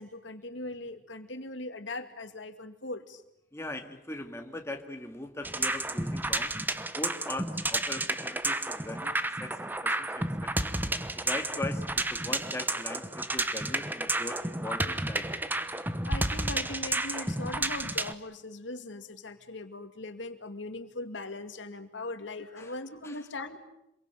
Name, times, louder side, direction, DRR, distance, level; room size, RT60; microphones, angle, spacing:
voice 1, 0.0-3.2 11.2-11.3 16.0-23.6, left 2 dB, 80° left, 8 dB, 2.3 m, -40 dB
voice 2, 3.5-6.5 7.0-10.7 11.2-15.3 22.6-22.7 23.0-23.2, left 2 dB, 15° left, 4 dB, 2.0 m, -40 dB
sound 1, 5.4-18.1, right 2 dB, 10° right, 1.1 m, -31 dB
27.0 x 23.0 x 9.1 m, 0.82 s
head